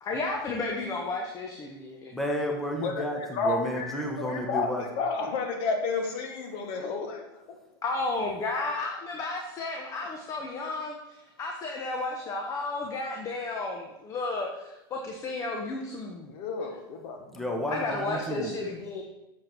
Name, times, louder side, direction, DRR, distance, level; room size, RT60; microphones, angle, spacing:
voice 1, 0.0-2.1 7.8-16.3 17.7-19.0, left 3 dB, 25° left, 1 dB, 1.2 m, -33 dB
voice 2, 2.1-4.8 17.3-18.6, equal, ahead, 0 dB, 1.2 m, -31 dB
voice 3, 3.3-7.6 16.3-17.3, left 4 dB, 45° left, 4 dB, 1.7 m, -31 dB
7.6 x 7.3 x 4.7 m, 0.97 s
supercardioid pair, 130°, 12 cm